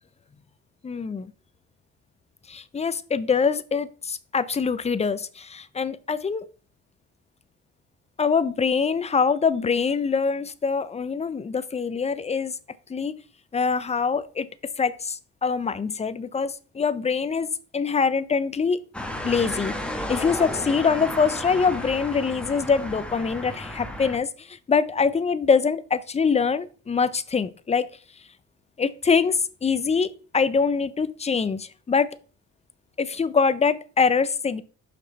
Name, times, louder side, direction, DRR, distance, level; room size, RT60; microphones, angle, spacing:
voice 1, 0.8-1.2 2.5-6.4 8.2-12.5 12.9-13.1 13.5-14.5 14.8-18.8 19.2-27.9 28.8-32.1 33.0-34.6, left 5 dB, 20° left, 15 dB, 0.5 m, -24 dB
sound 1, 18.9-24.2, left 1 dB, 5° left, 1.2 m, -33 dB
5.8 x 5.3 x 3.9 m, 0.39 s
cardioid pair, 90°, 30 cm